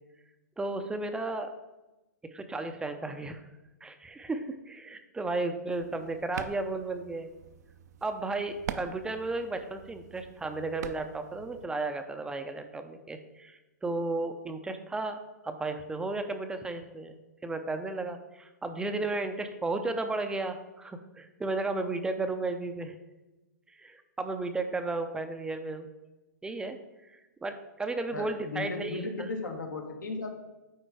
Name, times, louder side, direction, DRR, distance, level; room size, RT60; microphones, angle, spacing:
voice 1, 0.6-1.5 2.3-3.4 3.8-7.3 8.0-15.2 15.4-17.1 17.4-22.9 23.8-25.9 26.4-26.8 27.0-29.0, right 2 dB, 10° right, 7 dB, 0.5 m, -34 dB
sound 1, 5.7-11.7, right 8 dB, 60° right, 0.5 m, -44 dB
voice 2, 28.1-30.3, left 3 dB, 80° left, 3 dB, 1.5 m, -36 dB
9.0 x 3.8 x 4.7 m, 1.0 s
hypercardioid pair, 125°, 10 cm